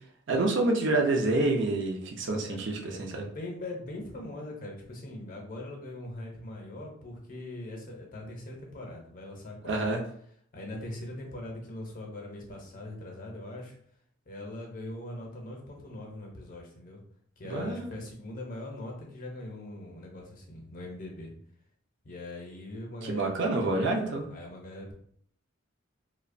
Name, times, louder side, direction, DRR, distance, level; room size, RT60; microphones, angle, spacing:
voice 1, 0.3-3.2 9.6-10.0 17.5-17.9 23.0-24.3, right 2 dB, 60° right, 2 dB, 0.4 m, -27 dB
voice 2, 2.3-9.8 10.5-13.8 14.3-17.0 17.4-21.3 22.0-23.4 23.7-24.9, left 1 dB, 40° left, 0 dB, 0.6 m, -41 dB
2.7 x 2.0 x 2.5 m, 0.63 s
head